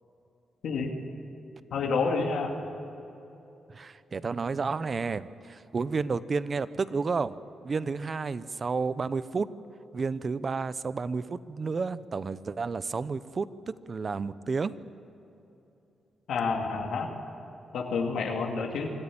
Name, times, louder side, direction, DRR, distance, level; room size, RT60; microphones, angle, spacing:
voice 1, 1.7-2.5 16.3-17.1 17.7-18.9, left 4 dB, 85° left, 1 dB, 2.3 m, -29 dB
voice 2, 3.7-7.4 7.6-9.5 9.9-14.8, right 4 dB, 40° right, 15 dB, 0.7 m, -31 dB
25.0 x 14.5 x 8.6 m, 3.0 s
cardioid pair, 105°, 0 cm